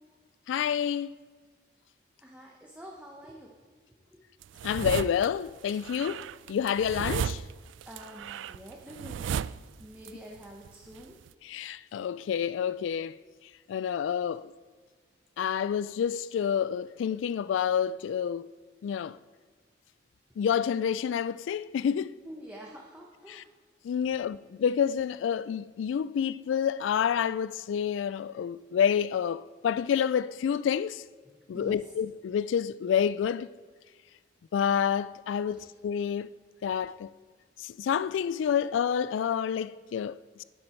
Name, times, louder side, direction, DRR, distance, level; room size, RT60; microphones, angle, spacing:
voice 1, 0.5-1.2 4.6-7.4 11.4-13.2 13.7-14.5 15.4-18.5 18.8-19.2 20.4-22.1 23.3-23.4 23.8-31.0 31.5-33.5 34.5-36.3 36.6-37.1 37.6-40.4, left 8 dB, 90° left, 0.3 m, -28 dB
voice 2, 2.2-3.5 4.1-4.2 7.9-11.2 22.2-23.5 24.1-24.2 31.3-31.9 35.5-35.7, equal, 10° right, 1.0 m, -47 dB
sound 1, 4.4-5.3 5.7-10.1 10.4-11.3, right 8 dB, 85° right, 0.3 m, -35 dB
11.5 x 9.8 x 4.4 m
head